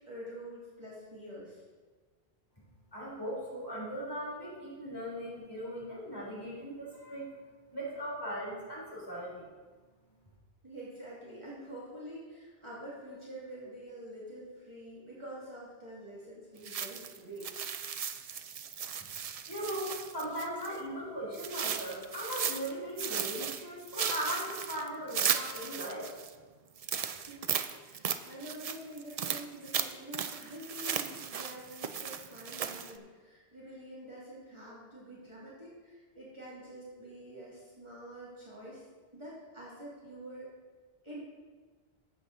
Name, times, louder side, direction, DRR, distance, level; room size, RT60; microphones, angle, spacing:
voice 1, 0.1-1.6 10.6-17.5 27.2-27.5 27.8-38.9 39.1-40.5 41.0-41.2, right 1 dB, 25° right, -8 dB, 2.5 m, -47 dB
voice 2, 2.9-7.3 7.7-9.4 19.5-26.1, equal, 20° left, -7 dB, 3.7 m, -38 dB
sound 1, 16.6-20.8 21.3-22.7 23.0-26.3 26.8-33.0, right 7 dB, 50° right, 0.4 m, -36 dB
12.0 x 8.3 x 4.0 m, 1.4 s
omnidirectional pair, 1.1 m